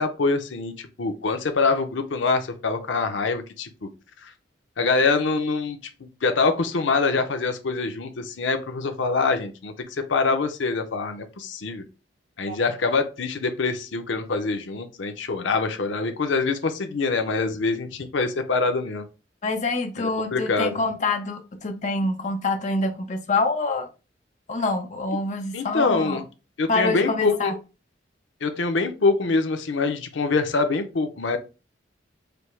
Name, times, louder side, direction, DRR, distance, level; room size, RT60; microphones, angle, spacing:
voice 1, 0.0-3.9 4.2-4.3 4.8-9.7 10.1-11.8 12.4-19.1 20.0-20.8 25.5-26.2 26.6-27.5 28.4-31.4, left 4 dB, 85° left, 0.6 m, -24 dB
voice 2, 19.4-23.9 24.5-26.2 26.7-27.6, left 3 dB, 40° left, 0.7 m, -26 dB
5.1 x 2.0 x 4.4 m
head